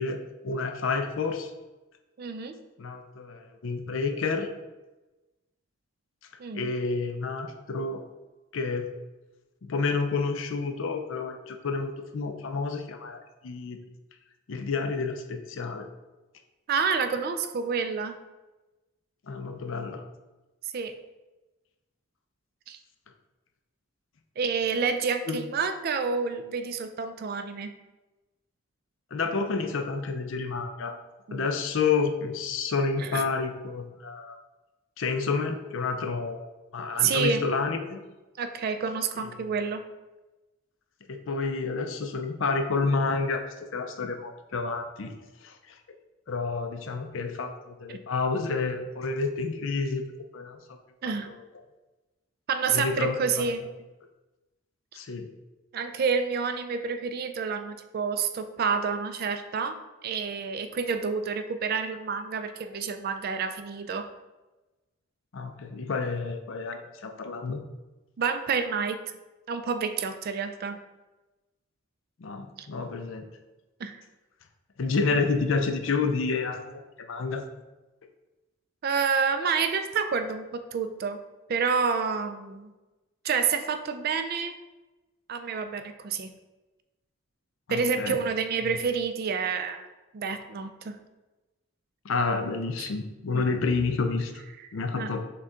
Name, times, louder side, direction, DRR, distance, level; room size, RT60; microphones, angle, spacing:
voice 1, 0.0-1.5 2.8-4.5 6.5-8.0 8.5-8.9 9.6-13.8 14.5-15.9 19.3-20.0 25.3-25.4 29.1-31.0 31.3-34.4 35.0-38.0 39.4-39.5 41.1-45.1 45.4-45.8 46.3-50.0 50.3-50.8 51.0-51.5 52.7-53.5 54.9-55.3 65.3-67.6 72.2-73.2 74.8-77.5 87.7-88.2 88.6-88.8 92.0-94.3 94.7-95.2, left 4 dB, 65° left, 6 dB, 0.5 m, -29 dB
voice 2, 2.2-2.5 6.4-6.7 16.7-18.2 20.7-20.9 22.7-22.8 24.4-27.7 31.3-31.5 33.0-33.2 37.0-37.4 38.4-39.8 47.9-48.0 51.0-51.3 52.5-53.6 55.7-64.1 68.2-69.0 69.5-70.8 72.6-72.7 73.8-74.0 78.8-81.2 81.5-82.7 83.2-84.6 85.3-86.3 87.7-89.9 90.1-91.0 92.8-92.9 93.3-93.4 95.0-95.1, right 5 dB, 45° right, 9 dB, 0.3 m, -28 dB
6.5 x 2.3 x 3.7 m, 1.1 s
head